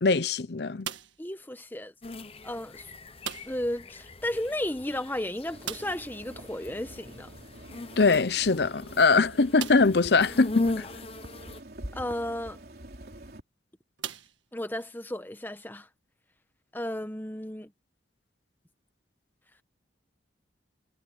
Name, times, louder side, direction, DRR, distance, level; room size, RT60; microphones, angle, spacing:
voice 1, 0.0-0.9 8.0-10.9, left 4 dB, 60° left, 0.7 m, -22 dB
sound 1, 0.8-1.4 3.2-3.8 4.0-4.1 4.4-4.5 5.6-6.2 7.9-8.0 8.6-8.7 9.5-10.1 10.8-10.9 12.9-13.1 14.0-14.9, right 8 dB, 85° right, 1.7 m, -39 dB
voice 2, 1.2-1.9 2.4-2.9 3.4-7.3 11.9-12.6 14.5-15.9 16.7-17.7, left 1 dB, 10° left, 1.2 m, -34 dB
sound 2, 2.0-11.6, left 2 dB, 30° left, 1.0 m, -39 dB
sound 3, 5.5-13.4, right 1 dB, 55° right, 3.8 m, -46 dB
head